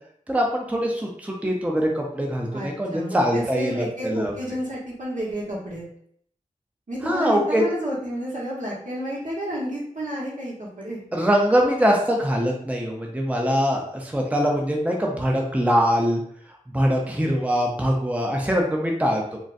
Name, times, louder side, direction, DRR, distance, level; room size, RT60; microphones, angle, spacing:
voice 1, 0.3-4.3 7.0-7.6 11.1-16.2 16.7-19.4, equal, 10° right, 0 dB, 0.6 m, -23 dB
voice 2, 2.5-5.8 6.9-11.0, equal, 75° right, -5 dB, 1.2 m, -30 dB
3.7 x 2.2 x 2.6 m, 0.64 s
wide cardioid pair, 50°, 13 cm